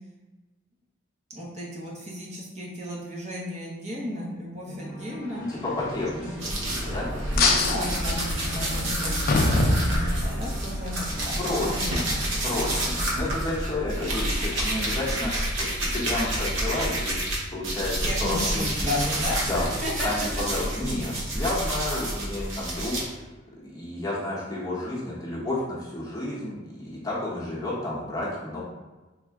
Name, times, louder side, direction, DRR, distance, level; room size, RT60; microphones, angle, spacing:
voice 1, 1.3-5.4 6.2-6.5 7.2-12.3 12.9-13.0 18.0-19.4 19.8-20.1 20.4-20.6, left 1 dB, 35° right, -4 dB, 0.6 m, -34 dB
sound 1, 4.7-12.9, equal, 15° right, 1.0 m, -40 dB
voice 2, 5.4-7.1 11.4-12.0 12.4-17.2 17.5-19.0 19.4-19.7 20.0-23.3 23.6-28.6, left 2 dB, 20° left, -7 dB, 0.8 m, -31 dB
sound 2, 6.4-17.4 17.6-23.0, right 1 dB, 70° right, 0.8 m, -29 dB
sound 3, 7.4-10.6, left 2 dB, 45° left, 0.3 m, -24 dB
3.3 x 2.1 x 3.5 m, 1.2 s
head